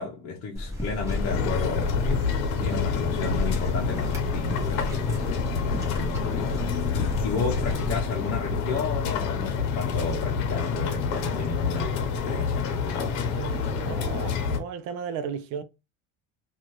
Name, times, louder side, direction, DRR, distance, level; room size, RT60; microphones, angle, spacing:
voice 1, 0.0-2.3 2.6-12.0 12.2-13.1, left 4 dB, 50° left, 0.7 m, -33 dB
sound 1, 0.5-8.0, left 1 dB, 10° right, 0.9 m, -33 dB
sound 2, 0.9-14.6, left 5 dB, 85° left, 0.8 m, -28 dB
voice 2, 13.2-15.6, right 7 dB, 65° right, 0.5 m, -35 dB
2.7 x 2.4 x 3.0 m
cardioid pair, 165°, 32 cm